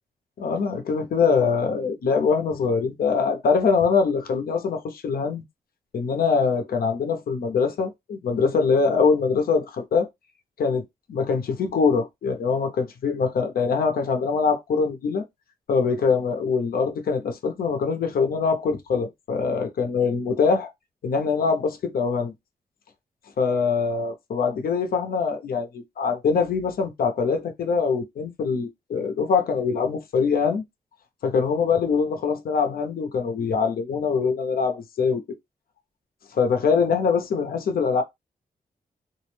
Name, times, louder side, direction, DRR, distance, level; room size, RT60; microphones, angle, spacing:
voice 1, 0.4-5.4 5.9-10.1 10.6-10.8 11.1-15.2 15.7-20.7 21.0-22.3 23.4-30.6 31.2-35.2 36.3-38.0, left 5 dB, 75° left, 0.7 m, -23 dB
2.5 x 2.0 x 3.1 m
wide cardioid pair, 110°, 15 cm